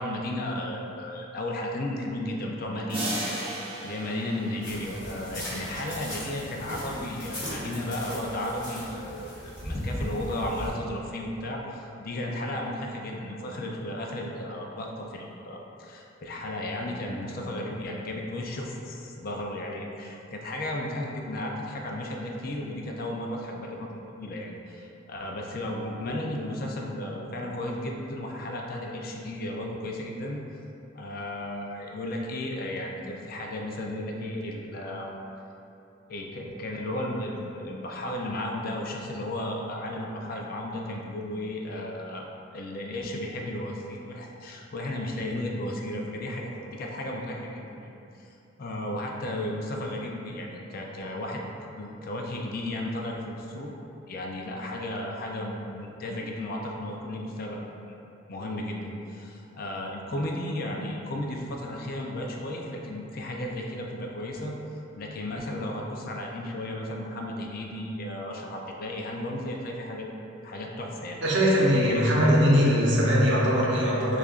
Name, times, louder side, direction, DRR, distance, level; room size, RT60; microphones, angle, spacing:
voice 1, 0.0-3.5 3.8-30.4 30.9-35.1 36.1-47.9 48.2-51.5 51.8-53.8 54.1-57.7 58.3-64.5 64.9-70.1 70.4-71.2 71.7-72.1, left 1 dB, 50° left, 0 dB, 0.4 m, -34 dB
sound 1, 2.9-5.7, right 1 dB, 30° right, 0.6 m, -35 dB
sound 2, 4.6-10.7, equal, 20° left, 1.3 m, -37 dB
voice 2, 71.2-74.2, equal, 65° right, -5 dB, 0.8 m, -21 dB
6.4 x 2.4 x 2.4 m, 2.8 s
head